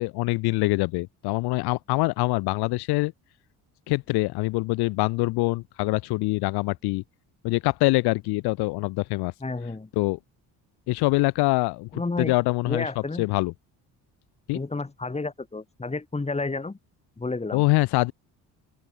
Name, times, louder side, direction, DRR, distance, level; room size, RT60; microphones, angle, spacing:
voice 1, 0.0-3.1 3.9-7.0 7.4-9.3 10.0-10.2 10.9-12.9 13.2-13.5 14.5-14.6 17.5-18.1, left 22 dB, 85° left, 0.6 m, -24 dB
voice 2, 9.4-9.9 11.9-12.3 12.6-13.3 14.5-16.8 17.2-17.6, left 3 dB, 15° left, 4.2 m, -31 dB
open air
cardioid pair, 115°, 38 cm